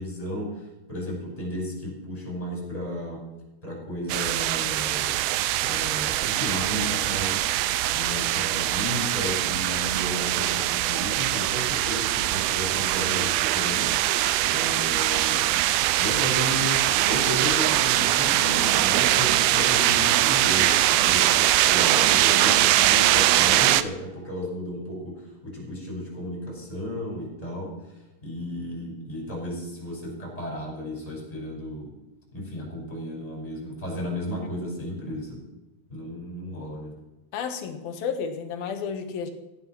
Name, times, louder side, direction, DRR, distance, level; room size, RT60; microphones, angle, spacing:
voice 1, 0.0-3.2 3.6-5.2 5.6-7.5 7.9-15.5 16.0-21.3 21.7-27.7 28.2-31.9 32.3-35.4 35.9-37.0, equal, 10° left, -2 dB, 5.7 m, -33 dB
sound 1, 4.1-23.8, right 15 dB, 80° right, 2.2 m, -22 dB
sound 2, 16.4-21.8, right 1 dB, 35° right, 6.2 m, -38 dB
voice 2, 37.3-39.3, left 6 dB, 70° left, 6 dB, 3.0 m, -31 dB
15.5 x 10.0 x 6.1 m, 1.0 s
omnidirectional pair, 4.8 m